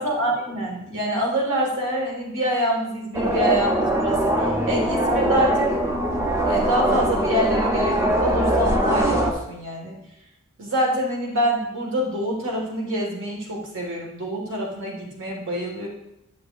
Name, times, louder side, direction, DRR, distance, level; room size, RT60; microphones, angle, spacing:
voice 1, 0.0-5.7 6.4-10.0 10.6-15.9, equal, 60° right, -1 dB, 1.8 m, -26 dB
sound 1, 3.1-9.3, right 1 dB, 15° right, 0.6 m, -22 dB
8.7 x 6.3 x 2.6 m, 0.84 s
head